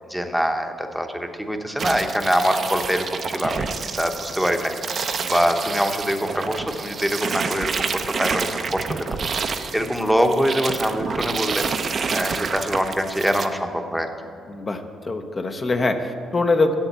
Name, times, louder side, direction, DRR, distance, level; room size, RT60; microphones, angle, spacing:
voice 1, 0.1-3.7 4.0-8.8 9.4-14.1, equal, ahead, 5 dB, 0.9 m, -24 dB
sound 1, 1.8-13.5, right 5 dB, 45° right, 0.6 m, -28 dB
voice 2, 14.5-16.7, left 3 dB, 30° left, 6 dB, 0.7 m, -23 dB
7.7 x 7.2 x 8.2 m, 2.4 s
cardioid pair, 90°, 0 cm